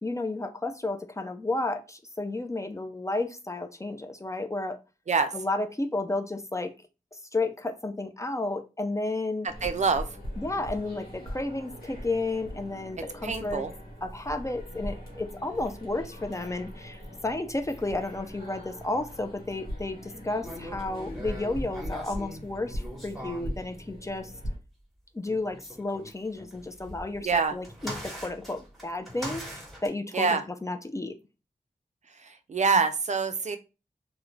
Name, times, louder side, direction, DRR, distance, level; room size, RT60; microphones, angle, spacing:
voice 1, 0.0-4.8 5.3-6.7 7.1-9.5 10.4-13.6 14.0-24.3 25.1-31.1, left 2 dB, 20° left, 7 dB, 0.4 m, -32 dB
sound 1, 9.5-24.5, equal, 85° left, 1.0 m, -40 dB
voice 2, 9.6-10.1 13.2-13.7 27.2-27.5 30.1-30.4 32.2-33.6, right 4 dB, 50° right, 9 dB, 0.4 m, -25 dB
sound 2, 20.4-23.6 25.2-29.9, equal, ahead, 1.0 m, -41 dB
2.3 x 2.1 x 3.0 m, 0.30 s
cardioid pair, 50°, 15 cm